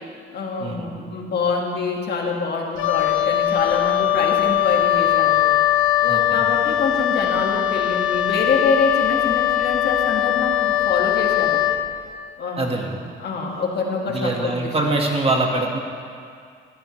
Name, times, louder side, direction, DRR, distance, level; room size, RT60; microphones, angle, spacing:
voice 1, 0.3-5.5 6.0-11.6 12.4-14.8, left 4 dB, 55° left, 0 dB, 1.8 m, -25 dB
Wind instrument woodwind instrument, 2.8-11.9, left 12 dB, 80° left, 0.7 m, -20 dB
voice 2, 6.1-6.4 12.6-13.0 14.1-15.8, right 2 dB, 30° right, 1 dB, 1.7 m, -23 dB
15.0 x 13.0 x 3.2 m, 2.2 s
cardioid pair, 90°, 20 cm